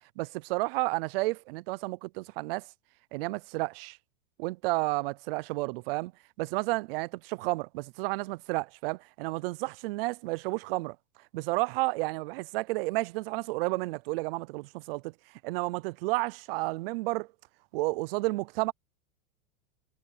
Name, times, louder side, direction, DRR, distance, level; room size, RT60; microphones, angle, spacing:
voice 1, 0.2-2.7 3.1-4.0 4.4-6.1 6.4-11.0 11.3-15.1 15.4-17.3 17.7-18.7, right 23 dB, 40° right, 0.5 m, -31 dB
supercardioid pair, 150°, 45 cm